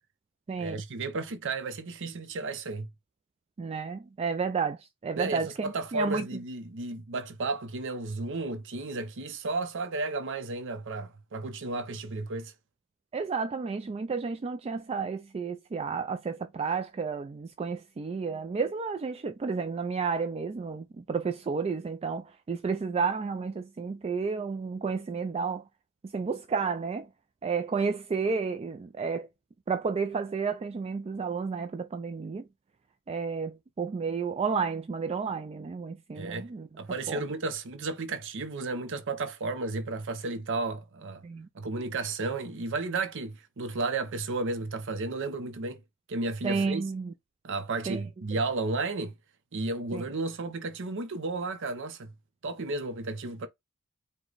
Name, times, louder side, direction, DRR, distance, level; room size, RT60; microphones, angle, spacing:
voice 1, 0.6-2.9 5.1-12.5 36.2-36.5 36.8-41.2 41.5-45.8 46.1-46.8 47.4-49.1 49.5-52.1 52.4-53.5, right 3 dB, 60° right, 0.6 m, -33 dB
voice 2, 3.6-6.3 13.1-25.6 26.0-27.1 27.4-29.3 29.7-32.5 33.1-36.7 37.1-37.2 41.2-41.5 46.4-47.1 47.9-48.0 49.9-50.0, right 5 dB, 30° right, 0.3 m, -31 dB
4.9 x 2.2 x 3.9 m
head